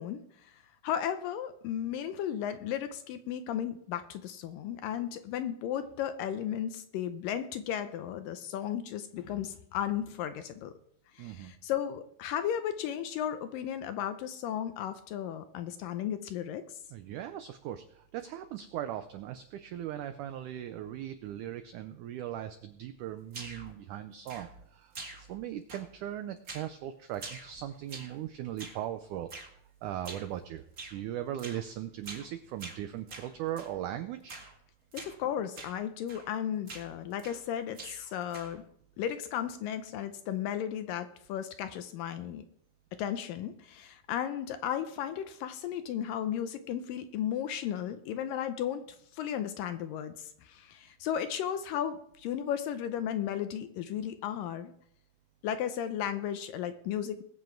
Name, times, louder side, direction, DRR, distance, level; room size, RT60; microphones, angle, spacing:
voice 1, 0.0-10.7 11.1-16.7 34.9-38.6 39.0-42.4 42.9-48.9 49.1-54.7 55.4-57.2, left 10 dB, 80° left, 10 dB, 2.1 m, -35 dB
voice 2, 11.2-11.5 16.9-29.3 29.8-30.6 30.9-34.4, right 11 dB, 90° right, 9 dB, 1.7 m, -39 dB
sound 1, 23.3-23.8 24.3-24.7 24.9-25.4 25.7-26.1 26.5-26.8 27.1-28.2 28.6-28.9 29.3-29.5 30.0-30.3 30.8-31.0 31.4-31.7 32.0-32.3 32.6-33.8 34.3-34.6 34.9-35.2 35.6-35.8 36.1-36.4 36.7-37.5 37.7-38.6, right 3 dB, 35° right, 1.5 m, -46 dB
20.5 x 7.8 x 4.5 m, 0.70 s
omnidirectional pair, 4.4 m